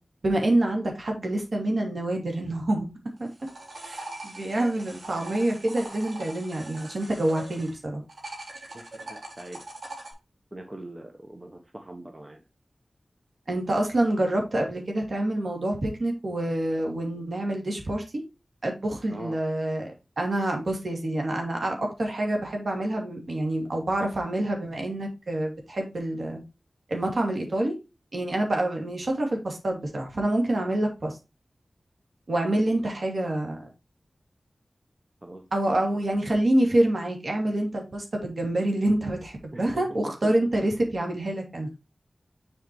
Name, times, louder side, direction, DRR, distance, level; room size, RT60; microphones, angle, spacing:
voice 1, 0.2-2.9 3.2-3.3 3.8-8.0 13.5-18.0 18.6-26.4 26.9-27.7 28.1-31.2 32.3-33.7 35.5-41.7, right 1 dB, 65° right, 2.5 m, -27 dB
sound 1, 3.2-7.8 8.1-10.1, right 2 dB, 85° right, 3.1 m, -41 dB
voice 2, 8.7-9.6 10.5-12.4 19.1-19.3 35.2-35.8 39.5-40.1, right 1 dB, 30° right, 1.1 m, -42 dB
7.3 x 5.0 x 3.1 m
wide cardioid pair, 80°, 0 cm